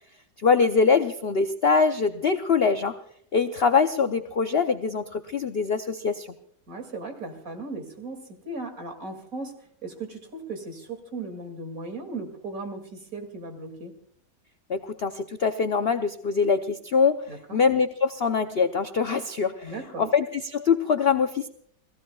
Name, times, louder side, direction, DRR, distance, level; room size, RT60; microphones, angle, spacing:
voice 1, 0.4-2.9 3.3-6.3 14.7-17.3 17.5-21.5, left 5 dB, 55° left, 8 dB, 0.7 m, -23 dB
voice 2, 6.7-9.5 9.8-13.9 17.3-17.6 19.6-20.1, right 3 dB, 50° right, 5 dB, 2.8 m, -37 dB
29.5 x 18.0 x 2.3 m, 0.64 s
omnidirectional pair, 1.8 m